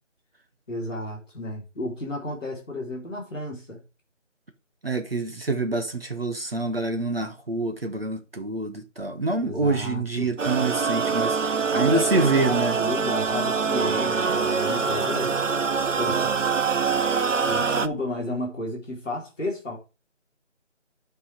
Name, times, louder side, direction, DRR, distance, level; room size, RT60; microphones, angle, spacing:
voice 1, 0.7-3.8 9.4-10.3 11.7-15.3 16.0-16.3 17.5-19.8, left 1 dB, 5° left, 2.1 m, -32 dB
voice 2, 4.8-12.8 14.3-14.4, right 3 dB, 50° right, 1.2 m, -26 dB
sound 1, 10.4-17.9, right 5 dB, 80° right, 0.9 m, -24 dB
10.5 x 5.6 x 4.9 m
figure-of-eight pair, 175°, 37 cm